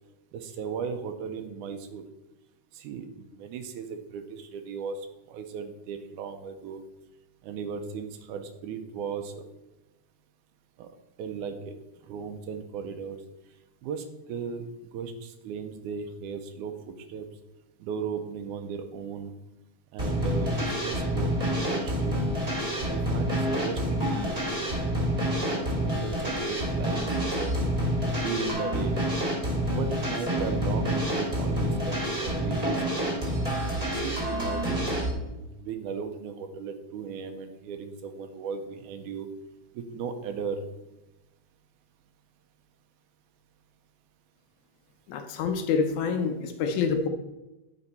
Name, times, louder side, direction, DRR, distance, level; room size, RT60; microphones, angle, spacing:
voice 1, 0.3-2.0 2.7-6.8 7.4-9.4 10.8-10.9 11.2-11.7 12.0-13.2 13.8-14.6 14.9-17.3 17.8-19.3 19.9-22.2 22.9-24.1 25.5-27.6 28.2-29.0 29.6-33.3 34.0-39.3 39.7-40.6, right 6 dB, 80° right, 7 dB, 2.0 m, -36 dB
sound 1, 20.0-35.1, equal, 20° right, 1.2 m, -28 dB
voice 2, 45.1-47.1, left 5 dB, 75° left, 5 dB, 1.9 m, -27 dB
9.6 x 4.9 x 4.1 m, 1.0 s
omnidirectional pair, 3.7 m